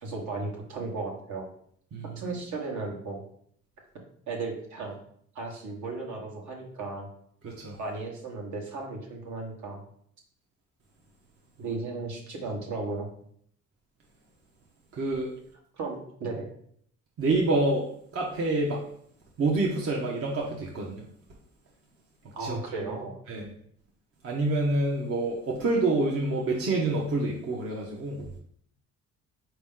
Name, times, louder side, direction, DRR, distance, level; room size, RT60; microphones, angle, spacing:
voice 1, 0.0-1.4 2.2-3.2 4.3-4.9 5.3-7.1 7.8-9.8 11.6-13.1 15.7-16.5 22.3-23.1, right 3 dB, 70° right, 0 dB, 1.2 m, -35 dB
voice 2, 7.4-7.8 14.9-15.3 17.2-17.8 18.1-18.8 19.4-21.0 22.4-22.5 23.3-23.5 24.2-28.2, right 2 dB, 50° right, -2 dB, 0.8 m, -27 dB
4.3 x 2.9 x 3.7 m, 0.65 s
cardioid pair, 90°, 30 cm